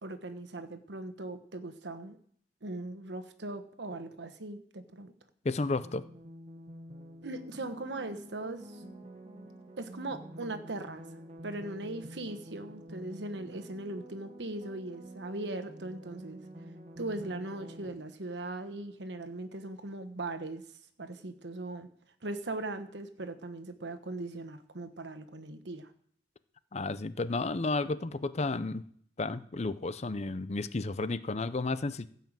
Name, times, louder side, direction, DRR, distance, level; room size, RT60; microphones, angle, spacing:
voice 1, 0.0-2.2 2.6-5.1 7.2-8.8 9.8-11.0 11.4-16.4 17.0-20.6 21.0-21.9 22.2-25.9, right 2 dB, 80° right, 10 dB, 1.2 m, -39 dB
voice 2, 5.4-6.1 26.7-28.8 29.2-32.1, left 3 dB, 40° left, 14 dB, 0.6 m, -32 dB
sound 1, 5.8-17.9, right 1 dB, 35° right, 1.4 m, -48 dB
15.5 x 5.7 x 7.5 m, 0.62 s
head